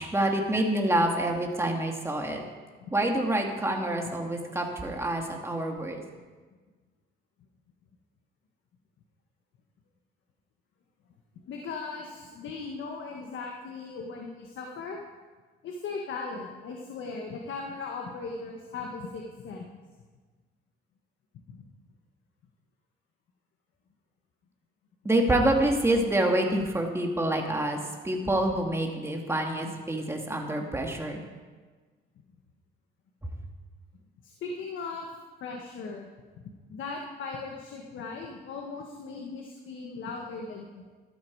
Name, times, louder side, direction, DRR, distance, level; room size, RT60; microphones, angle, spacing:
voice 1, 0.0-2.4 2.9-6.0 25.0-31.2, right 1 dB, 15° right, 1 dB, 2.4 m, -27 dB
voice 2, 11.5-15.0 15.6-19.8 21.5-21.6 34.2-35.1 35.4-36.1 36.4-40.8, left 4 dB, 75° left, 1 dB, 1.5 m, -38 dB
13.5 x 12.5 x 4.8 m, 1.4 s
cardioid pair, 90°, 20 cm